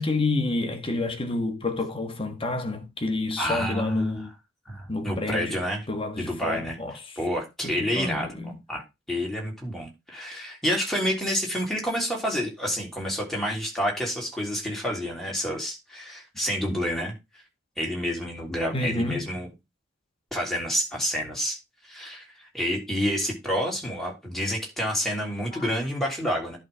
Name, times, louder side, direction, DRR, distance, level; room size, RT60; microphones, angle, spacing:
voice 1, 0.0-4.3 4.9-7.2 7.6-8.5 16.7-16.8 18.7-19.3 25.5-25.7, left 2 dB, 25° left, 1.4 m, -29 dB
voice 2, 3.4-4.1 4.7-5.8 6.2-6.7 7.2-8.3 8.7-8.8 9.1-17.1 17.8-19.5 20.3-21.6 21.9-22.3 22.5-26.6, equal, ahead, 3.2 m, -28 dB
11.0 x 3.7 x 5.5 m
head